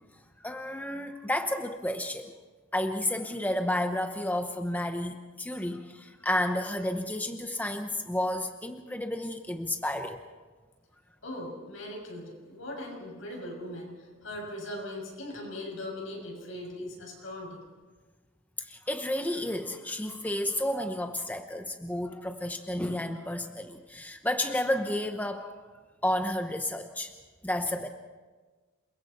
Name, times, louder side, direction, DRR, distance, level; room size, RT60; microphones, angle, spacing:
voice 1, 0.4-2.3 2.7-10.2 16.8-16.9 18.6-25.5 26.0-27.1 27.4-27.9, left 1 dB, 10° left, 6 dB, 0.8 m, -31 dB
voice 2, 11.2-17.6, left 1 dB, 75° left, 0 dB, 6.7 m, -40 dB
28.0 x 23.5 x 4.3 m, 1.4 s
head